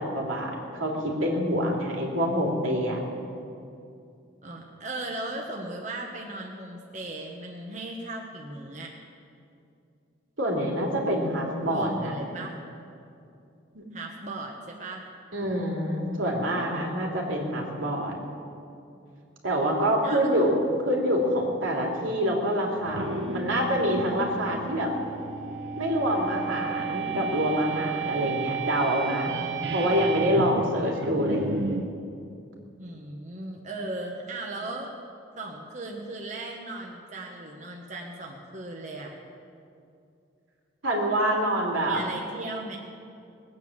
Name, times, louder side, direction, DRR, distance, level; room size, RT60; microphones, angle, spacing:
voice 1, 0.0-3.0 10.4-12.2 13.7-13.8 15.3-18.1 19.4-24.9 25.8-29.4 29.7-31.5 40.8-42.0, equal, 90° right, -2 dB, 3.3 m, -26 dB
voice 2, 4.4-9.0 11.7-12.6 13.9-15.1 19.5-20.2 32.8-34.9 35.3-39.2 41.9-42.8, right 2 dB, 40° right, 0 dB, 1.4 m, -37 dB
sound 1, 22.8-31.9, right 4 dB, 60° right, 1.0 m, -32 dB
20.5 x 9.3 x 7.4 m, 2.5 s
head